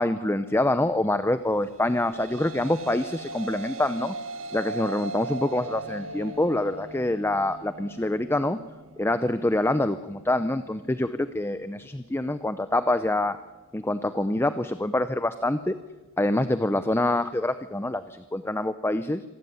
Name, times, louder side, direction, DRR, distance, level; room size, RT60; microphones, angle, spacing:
voice 1, 0.0-4.1 4.5-8.6 9.0-13.4 13.7-15.8 16.2-19.2, left 1 dB, 10° left, 12 dB, 0.6 m, -26 dB
sound 1, 1.7-10.3, right 2 dB, 70° right, 2.1 m, -39 dB
26.0 x 13.5 x 9.5 m, 1.2 s
head